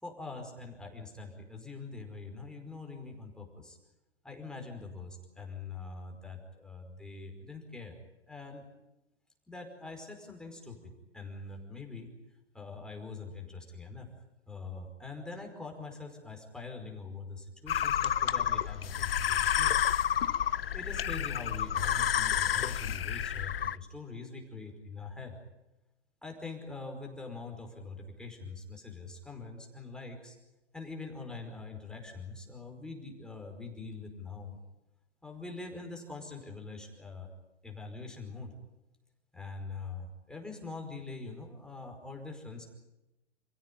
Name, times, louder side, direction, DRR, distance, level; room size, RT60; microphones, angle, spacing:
voice 1, 0.0-3.8 4.2-8.0 8.3-8.6 9.5-12.1 12.5-14.1 14.5-19.8 20.7-25.4 26.2-30.4 30.7-34.6 35.2-37.3 37.6-38.5 39.3-42.7, left 3 dB, ahead, 1 dB, 5.1 m, -43 dB
sound 1, 17.7-23.8, left 10 dB, 55° left, 0.9 m, -30 dB
29.0 x 16.5 x 10.0 m, 0.99 s
figure-of-eight pair, 120°, 35 cm